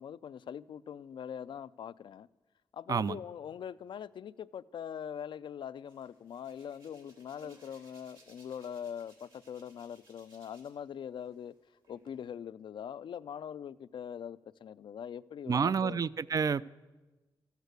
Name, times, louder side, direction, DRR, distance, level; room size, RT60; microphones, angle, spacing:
voice 1, 0.0-2.3 2.7-11.5 11.9-16.0, left 8 dB, 70° left, 0.3 m, -42 dB
Hands, 5.9-10.9 11.2-12.1, right 2 dB, 70° right, 3.4 m, -62 dB
voice 2, 15.5-16.7, right 6 dB, 45° right, 0.4 m, -29 dB
13.5 x 8.1 x 8.1 m
cardioid pair, 70°, 8 cm